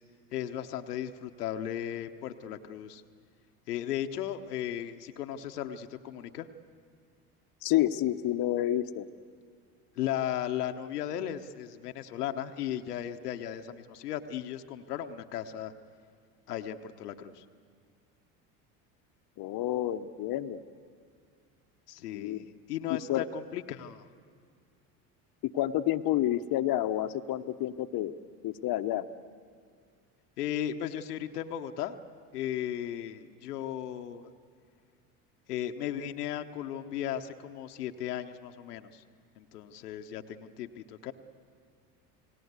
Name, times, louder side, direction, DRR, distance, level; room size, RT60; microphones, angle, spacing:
voice 1, 0.3-3.0 3.7-6.5 10.0-15.7 16.5-17.4 21.9-24.1 30.4-32.0 32.3-34.3 35.5-39.0 39.4-41.1, left 10 dB, 85° left, 6 dB, 1.1 m, -36 dB
voice 2, 7.6-9.1 19.4-20.6 22.1-22.4 22.9-23.2 25.4-28.1 28.4-29.1, left 13 dB, 50° left, 8 dB, 1.0 m, -29 dB
29.0 x 19.0 x 8.2 m, 2.1 s
hypercardioid pair, 75°, 45 cm